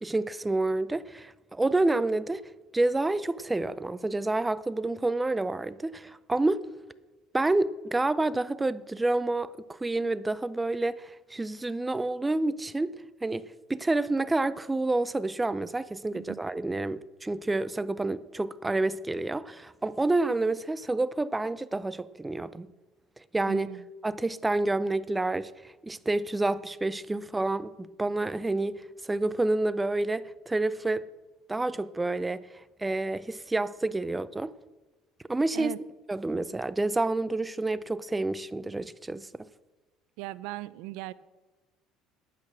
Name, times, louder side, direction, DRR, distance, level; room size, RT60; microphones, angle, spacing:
voice 1, 0.0-2.4 2.7-6.7 7.3-13.0 13.2-22.7 23.3-23.7 24.0-31.1 31.5-32.4 32.8-34.5 35.3-35.7 36.1-39.3, right 2 dB, 15° right, 0.5 m, -28 dB
voice 2, 23.5-23.8 35.5-35.8 40.2-41.1, right 18 dB, 80° right, 0.5 m, -38 dB
11.5 x 8.7 x 6.2 m
supercardioid pair, 105°, 0 cm